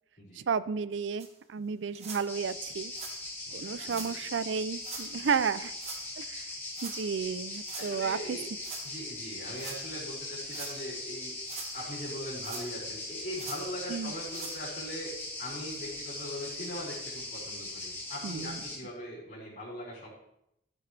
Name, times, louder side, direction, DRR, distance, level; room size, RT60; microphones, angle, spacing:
voice 1, 0.4-2.9 3.5-5.7 6.2-6.5 6.8-8.4 13.9-14.1 18.2-18.6, right 6 dB, 80° right, 16 dB, 0.4 m, -32 dB
sound 1, 1.2-1.3 1.9-2.2 2.9-3.2 3.8-4.1 4.8-5.1 5.8-6.0 6.7-7.0 7.5-7.9 8.6-8.9 9.5-9.8 10.4-10.7 11.3-11.7 12.4-12.9 13.3-13.6 14.2-14.6 15.2-15.3 15.7-15.8 16.6-16.7, right 5 dB, 35° right, 1.2 m, -43 dB
sound 2, 2.3-18.8, left 2 dB, 10° left, 2.6 m, -40 dB
voice 2, 3.5-4.2 5.2-5.3 7.7-8.5 8.8-11.3 11.7-20.1, equal, 40° left, -11 dB, 4.7 m, -41 dB
12.5 x 9.0 x 3.3 m, 0.81 s
head